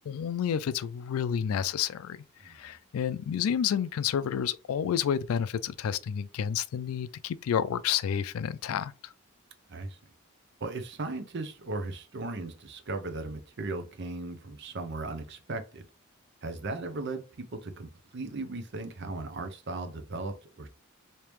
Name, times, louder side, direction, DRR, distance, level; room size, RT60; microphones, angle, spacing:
voice 1, 0.0-2.2 2.4-9.1, left 8 dB, 90° left, 0.3 m, -30 dB
voice 2, 10.6-15.8 16.4-20.7, right 2 dB, 55° right, 0.6 m, -37 dB
3.4 x 2.8 x 3.0 m
head